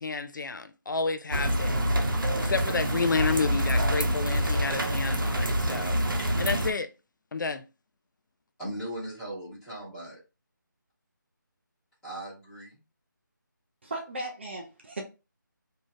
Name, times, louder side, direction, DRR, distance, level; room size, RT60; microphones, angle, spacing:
voice 1, 0.0-6.0 6.4-6.9 7.3-7.6, left 4 dB, 65° left, 0.4 m, -31 dB
sound 1, 1.3-6.7, equal, 80° right, 0.8 m, -26 dB
voice 2, 8.6-10.2 12.0-12.8, right 1 dB, 5° left, 1.3 m, -38 dB
voice 3, 13.8-15.0, right 2 dB, 35° right, 0.5 m, -36 dB
3.1 x 2.7 x 2.3 m
figure-of-eight pair, 165°, 11 cm